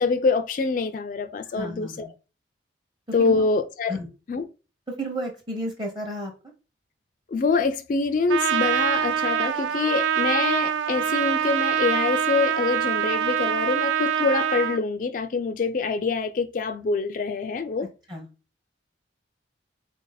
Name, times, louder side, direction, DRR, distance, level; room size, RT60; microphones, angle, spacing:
voice 1, 0.0-2.1 3.1-4.0 4.3-4.4 7.3-17.9, left 4 dB, 45° left, 0.3 m, -25 dB
voice 2, 1.6-2.1 3.2-3.4 3.9-4.1 4.9-6.3 18.1-18.3, equal, 25° right, 0.7 m, -32 dB
Trumpet, 8.3-14.8, right 9 dB, 80° right, 0.3 m, -24 dB
3.8 x 2.6 x 3.9 m
head